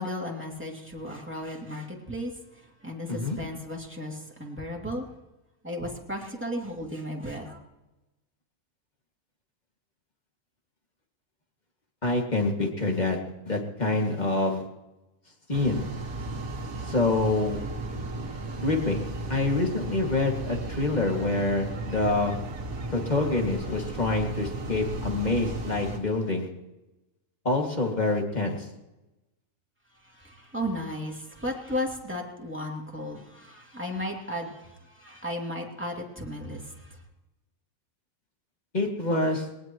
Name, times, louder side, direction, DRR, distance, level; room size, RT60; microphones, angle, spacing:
voice 1, 0.0-2.3 2.8-5.0 5.6-7.6 30.1-36.8, equal, 10° right, -1 dB, 2.6 m, -35 dB
voice 2, 12.0-13.2 13.4-14.6 15.5-15.9 16.9-17.6 18.6-19.0 19.3-22.3 22.9-26.5 27.4-28.7 38.7-39.5, left 2 dB, 30° left, 1 dB, 2.4 m, -26 dB
sound 1, 15.5-26.0, right 2 dB, 65° right, 2.1 m, -35 dB
21.0 x 18.5 x 3.1 m, 1.0 s
omnidirectional pair, 1.5 m